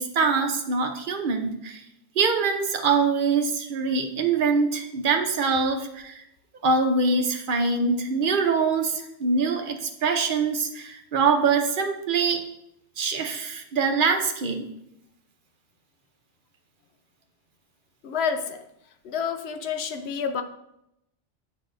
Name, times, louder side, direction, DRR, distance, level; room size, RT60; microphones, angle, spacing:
voice 1, 0.0-1.8 2.2-6.2 6.6-12.4 13.0-14.7, right 4 dB, 50° right, 4 dB, 0.9 m, -24 dB
voice 2, 18.0-18.6 19.0-20.4, left 6 dB, 65° left, 7 dB, 0.8 m, -28 dB
8.0 x 5.6 x 2.6 m, 0.81 s
omnidirectional pair, 1.3 m